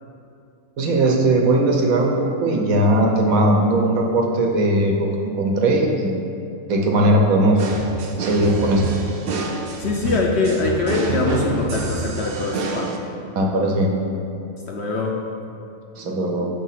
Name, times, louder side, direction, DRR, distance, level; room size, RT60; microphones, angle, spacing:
voice 1, 0.8-5.1 5.4-6.3 6.7-7.6 8.2-8.9 13.4-13.9 16.0-16.5, right 1 dB, 80° right, 0 dB, 1.2 m, -18 dB
sound 1, 7.6-13.0, right 4 dB, 60° right, 0.6 m, -27 dB
voice 2, 9.8-13.0 14.7-15.2, left 3 dB, 65° left, -1 dB, 0.7 m, -23 dB
6.9 x 2.7 x 5.7 m, 2.7 s
omnidirectional pair, 1.5 m